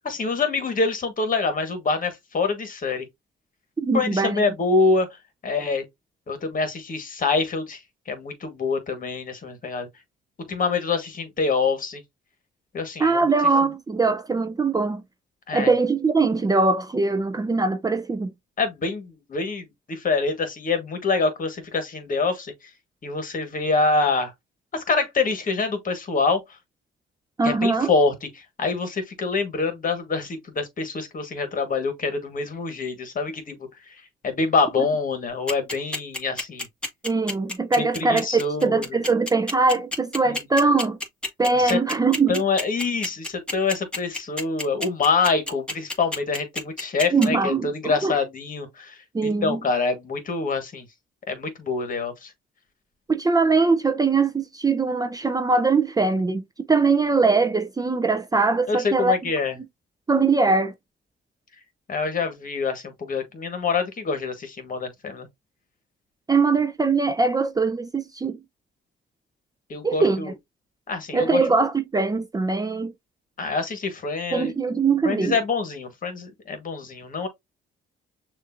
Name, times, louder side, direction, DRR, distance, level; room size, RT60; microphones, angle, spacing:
voice 1, 0.0-3.1 3.9-5.8 6.3-9.9 10.5-12.0 12.7-13.3 15.5-15.7 18.6-22.7 23.0-24.3 24.7-26.6 27.4-36.7 37.8-39.0 40.2-40.5 41.5-41.8 42.3-50.9 51.3-52.3 58.7-59.6 61.9-65.3 69.7-70.3 70.9-71.4 73.4-74.5 75.0-77.3, left 4 dB, 45° left, 1.4 m, -26 dB
voice 2, 3.8-4.4 13.0-15.0 15.5-18.3 27.4-27.9 37.0-38.3 38.6-41.0 41.4-42.4 47.1-48.1 49.1-49.6 53.1-56.4 56.7-59.2 60.1-60.7 66.3-68.4 69.8-70.2 71.1-72.9 74.3-75.3, right 4 dB, 20° right, 0.5 m, -21 dB
sound 1, 35.5-47.3, left 2 dB, 5° left, 1.7 m, -29 dB
6.4 x 2.6 x 2.5 m
cardioid pair, 90°, 20 cm